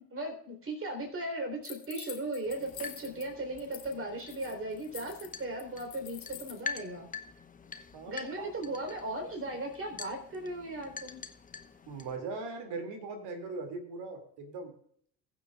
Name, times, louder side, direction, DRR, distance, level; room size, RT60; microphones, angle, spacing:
voice 1, 0.1-7.1 8.1-11.2, right 1 dB, 25° right, 2 dB, 3.8 m, -37 dB
sound 1, 1.6-3.3 3.6-3.9 4.2-6.6, left 11 dB, 75° left, 1.2 m, -47 dB
sound 2, 2.4-12.2, left 5 dB, 15° left, 0.8 m, -46 dB
voice 2, 7.9-8.5 11.9-14.7, right 3 dB, 50° right, 6 dB, 2.6 m, -40 dB
21.0 x 7.2 x 2.4 m, 0.63 s
figure-of-eight pair, 55°, 49 cm